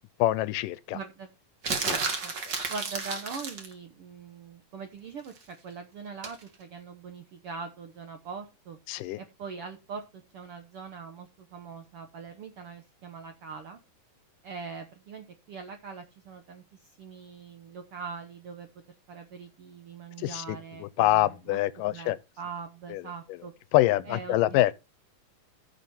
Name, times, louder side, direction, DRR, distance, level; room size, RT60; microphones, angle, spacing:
voice 1, 0.2-1.0 1.9-2.0 2.5-2.6 8.9-9.2 20.2-22.2 22.9-23.0 23.7-24.7, left 15 dB, 80° left, 2.2 m, -25 dB
voice 2, 0.9-1.3 1.8-2.3 2.7-8.8 9.2-13.8 14.4-18.7 19.1-23.5 24.1-24.6, right 5 dB, 75° right, 1.3 m, -42 dB
sound 1, 1.6-3.7 6.2-6.4, right 4 dB, 40° right, 1.7 m, -31 dB
15.0 x 5.9 x 4.2 m
omnidirectional pair, 3.9 m